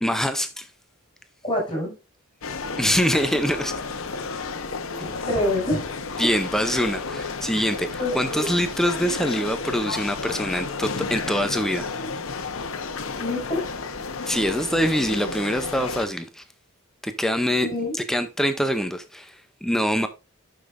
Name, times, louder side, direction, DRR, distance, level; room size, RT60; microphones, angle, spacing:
voice 1, 0.0-0.7 2.8-3.8 6.2-11.9 14.3-16.4 17.0-17.7 17.9-20.1, equal, ahead, 0.5 m, -24 dB
voice 2, 1.4-1.9 5.0-5.9 8.0-8.5 13.2-13.7 17.6-18.0, left 1 dB, 20° left, 5.4 m, -26 dB
sound 1, 2.4-16.1, left 4 dB, 65° left, 0.9 m, -32 dB
9.9 x 6.9 x 2.5 m
head